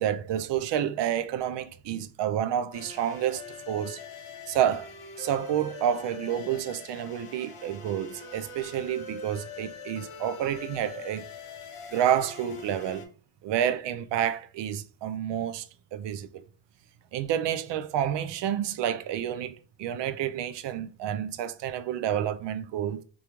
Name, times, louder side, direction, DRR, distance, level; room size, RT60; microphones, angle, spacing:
voice 1, 0.0-4.0 4.5-4.9 5.2-11.2 11.9-13.1 13.4-16.4 17.1-23.0, right 10 dB, 60° right, 0.5 m, -29 dB
sound 1, 2.7-13.1, left 4 dB, 80° left, 0.9 m, -43 dB
3.7 x 2.3 x 3.0 m
supercardioid pair, 65°, 50 cm